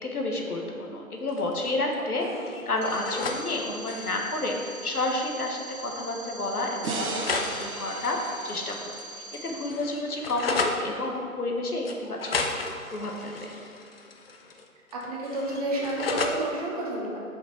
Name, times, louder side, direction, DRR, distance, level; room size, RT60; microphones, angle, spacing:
voice 1, 0.0-2.3 2.7-12.3 12.9-13.5, left 2 dB, 85° left, 1 dB, 1.1 m, -30 dB
sound 1, 1.3-1.9 2.2-3.4 3.7-4.2 5.3-5.4 5.7-5.8 6.8-9.0 9.3-10.8 11.8-14.6 14.9-16.4, left 3 dB, 45° left, 0.5 m, -34 dB
sound 2, 2.8-9.7, right 2 dB, 60° right, 1.3 m, -43 dB
sound 3, 6.8-10.1, right 3 dB, 75° right, 0.8 m, -37 dB
voice 2, 14.9-17.2, right 2 dB, 25° right, -3 dB, 0.9 m, -30 dB
5.1 x 5.1 x 4.2 m, 2.4 s
figure-of-eight pair, 145°, 44 cm